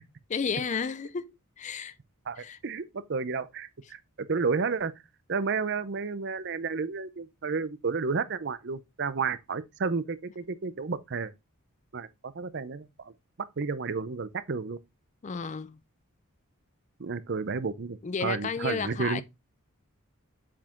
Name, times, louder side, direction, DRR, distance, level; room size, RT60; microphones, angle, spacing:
voice 1, 0.3-2.0 2.4-2.6 15.2-15.8 18.0-19.2, left 6 dB, 30° left, 0.4 m, -32 dB
voice 2, 2.3-4.9 5.3-11.3 11.9-13.1 13.6-14.8 17.0-19.2, right 4 dB, 50° right, 0.6 m, -31 dB
7.3 x 4.8 x 3.6 m
head